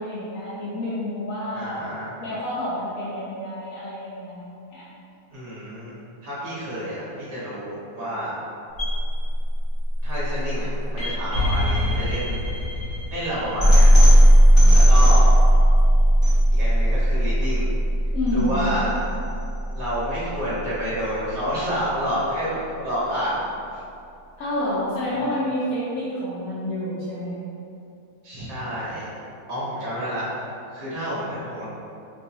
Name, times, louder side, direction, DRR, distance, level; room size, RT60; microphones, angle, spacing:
voice 1, 0.0-1.8 2.2-4.8 14.5-14.9 18.1-18.6 24.4-27.3, left 1 dB, 65° left, -10 dB, 1.1 m, -29 dB
voice 2, 1.5-2.1 5.3-5.9 6.2-8.4 10.0-12.5 13.1-14.0 14.7-15.3 16.5-17.7 18.3-18.9 19.7-23.4 23.7-23.8 28.2-29.1 29.5-31.6, equal, 45° right, -9 dB, 1.4 m, -29 dB
sound 1, 8.8-20.8, equal, 35° left, 1.6 m, -17 dB
3.6 x 3.0 x 2.8 m, 2.6 s
omnidirectional pair, 1.7 m